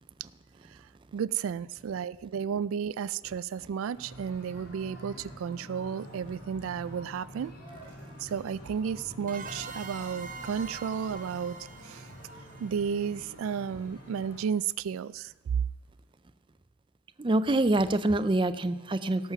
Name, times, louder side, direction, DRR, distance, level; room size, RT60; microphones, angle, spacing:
voice 1, 0.7-7.5 8.2-12.1 12.6-15.7, right 7 dB, 85° right, 17 dB, 0.3 m, -33 dB
sound 1, 3.9-14.4, equal, 50° left, 5.1 m, -47 dB
sound 2, 9.3-13.8, right 4 dB, 40° right, 0.9 m, -44 dB
voice 2, 17.2-19.3, right 2 dB, 25° right, 12 dB, 0.4 m, -26 dB
17.5 x 7.3 x 5.9 m, 1.1 s
head